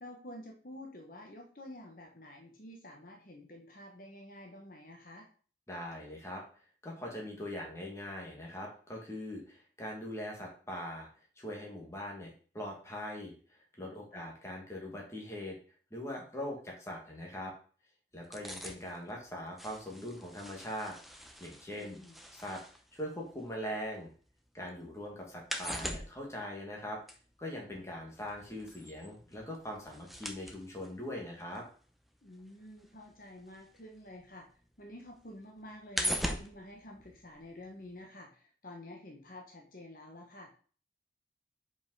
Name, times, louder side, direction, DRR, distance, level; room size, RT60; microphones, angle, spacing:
voice 1, 0.0-5.3 14.1-14.3 21.8-22.2 32.2-34.5 34.8-40.5, left 1 dB, 50° left, 1 dB, 1.1 m, -49 dB
voice 2, 5.7-6.4 6.8-11.1 11.4-15.6 15.9-17.5 18.1-20.9 21.4-22.0 22.3-22.6 22.9-24.1 24.5-27.0 27.4-31.6, left 1 dB, 15° left, -1 dB, 1.8 m, -41 dB
sound 1, 18.2-24.3 24.6-34.3 34.6-37.7 38.0-38.1, equal, ahead, 0.6 m, -42 dB
5.2 x 5.1 x 4.7 m, 0.42 s
head